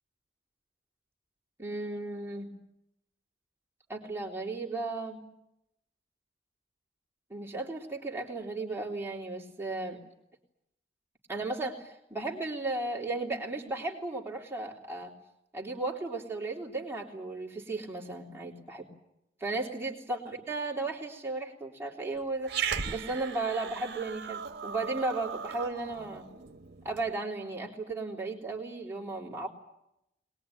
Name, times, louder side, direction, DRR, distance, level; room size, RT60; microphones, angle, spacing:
voice 1, 1.6-2.5 3.9-5.2 7.3-10.0 11.3-15.1 15.5-18.9 19.4-26.2 26.8-29.5, right 3 dB, 15° right, -2 dB, 3.4 m, -35 dB
Growling, 22.4-27.1, right 7 dB, 60° right, 1.5 m, -37 dB
23.5 x 21.0 x 9.4 m, 0.82 s
head